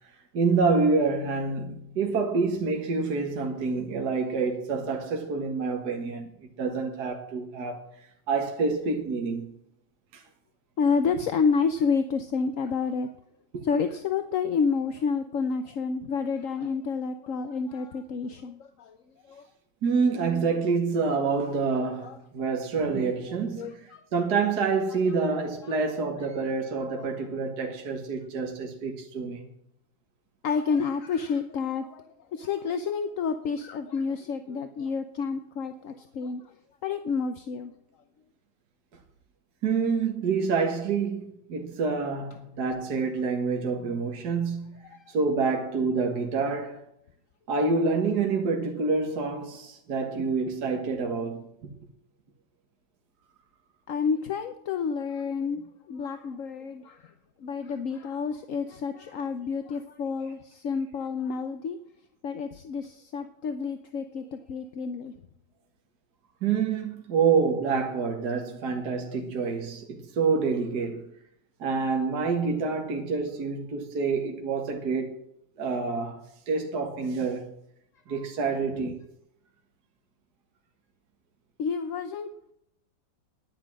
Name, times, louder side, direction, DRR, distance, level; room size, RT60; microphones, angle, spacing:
voice 1, 0.3-7.8 8.3-9.6 10.1-10.2 13.5-13.7 19.8-29.5 39.6-46.8 47.5-51.7 66.4-71.1 71.6-75.2 75.6-77.5 78.1-79.0, right 4 dB, 55° right, 2.1 m, -27 dB
voice 2, 10.8-13.1 13.6-19.0 19.3-19.5 21.2-21.3 22.0-22.2 23.6-24.0 25.8-25.9 27.0-27.1 30.4-32.1 32.3-36.5 36.8-37.7 44.9-45.1 53.9-55.6 55.9-57.1 57.4-61.8 62.2-65.1 78.8-78.9 81.6-82.3, left 5 dB, 55° left, 1.0 m, -29 dB
10.5 x 10.0 x 7.4 m
omnidirectional pair, 2.1 m